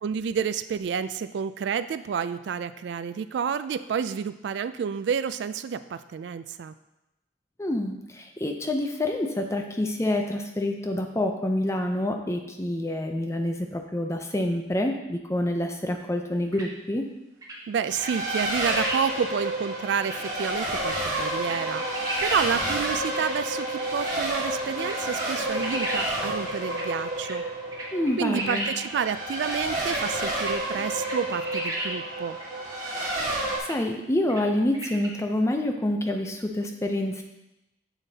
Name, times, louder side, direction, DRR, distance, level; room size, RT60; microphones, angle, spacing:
voice 1, 0.0-6.7 17.7-27.4 28.2-32.4, right 7 dB, 75° right, 13 dB, 0.3 m, -30 dB
voice 2, 7.6-17.0 27.9-28.7 33.6-37.2, left 1 dB, 15° left, 4 dB, 0.6 m, -27 dB
sound 1, 16.5-16.7 17.4-17.6 18.0-18.1 18.4-19.0 19.4-19.5 20.0-20.2 20.8-20.9 21.4-22.5 22.8-22.9 23.1-23.3 24.0-24.1 24.8-26.1 26.5-26.9 27.2-27.3 27.7-28.7 29.4-29.6 29.9-30.0 30.4-30.5 31.0-31.9 32.4-32.5 33.6-33.8 34.3-34.4 34.7-35.1, right 1 dB, 20° right, 1.0 m, -33 dB
Race car auto racing, 17.8-33.6, right 1 dB, 45° right, 1.6 m, -30 dB
7.1 x 7.0 x 2.8 m, 0.93 s
head